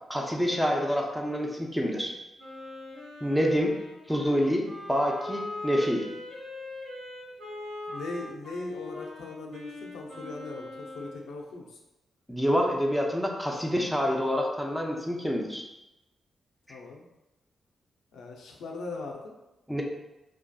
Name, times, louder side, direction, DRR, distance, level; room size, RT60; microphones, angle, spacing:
voice 1, 0.1-2.1 3.2-3.7 4.1-6.1 12.3-15.6 19.7-19.8, equal, ahead, 1 dB, 0.4 m, -27 dB
Wind instrument woodwind instrument, 2.4-11.2, left 2 dB, 70° right, 1.2 m, -41 dB
voice 2, 7.9-11.8 16.7-17.1 18.1-19.4, left 3 dB, 85° left, 0 dB, 0.4 m, -39 dB
2.6 x 2.3 x 2.3 m, 0.96 s
cardioid pair, 70°, 0 cm